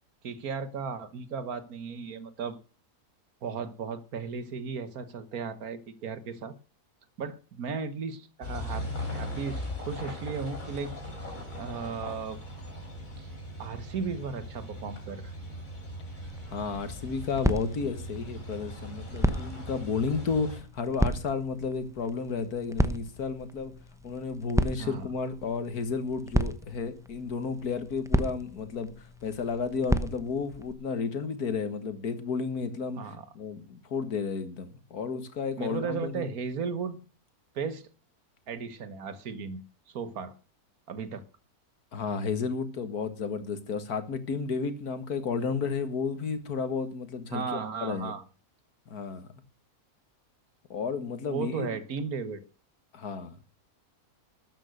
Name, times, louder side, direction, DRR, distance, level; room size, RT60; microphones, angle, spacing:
voice 1, 0.2-2.6 3.4-6.5 7.2-10.9 11.6-12.4 13.2-13.3 13.6-15.3 24.8-25.1 33.0-33.3 35.6-37.0 37.5-37.9 38.5-39.6 39.9-40.3 40.9-41.3 47.3-48.2 51.3-52.4, right 5 dB, 75° right, 1.7 m, -35 dB
sound 1, 8.4-20.6, left 1 dB, 55° left, 5.2 m, -39 dB
sound 2, 16.2-30.7, right 1 dB, 5° right, 0.6 m, -33 dB
voice 2, 16.5-23.7 24.0-28.9 29.2-33.0 33.4-36.3 41.9-47.5 47.8-48.1 48.9-49.3 50.7-51.8 52.9-53.4, left 5 dB, 80° left, 2.1 m, -32 dB
13.0 x 9.0 x 6.5 m
omnidirectional pair, 1.6 m